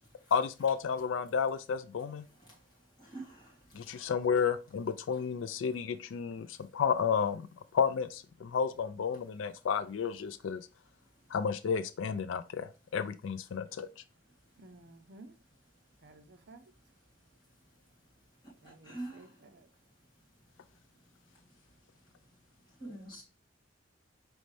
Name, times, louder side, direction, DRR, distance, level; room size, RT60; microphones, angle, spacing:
voice 1, 0.3-2.2 3.7-7.4 7.7-10.6 11.3-13.9, left 6 dB, 75° left, 0.4 m, -31 dB
voice 2, 3.0-3.5 3.8-4.0 18.6-19.3 22.8-23.2, right 2 dB, 20° left, 1.9 m, -44 dB
voice 3, 14.6-15.3 16.0-16.7 18.6-19.7, right 2 dB, 55° right, 0.6 m, -55 dB
5.2 x 3.1 x 3.1 m
head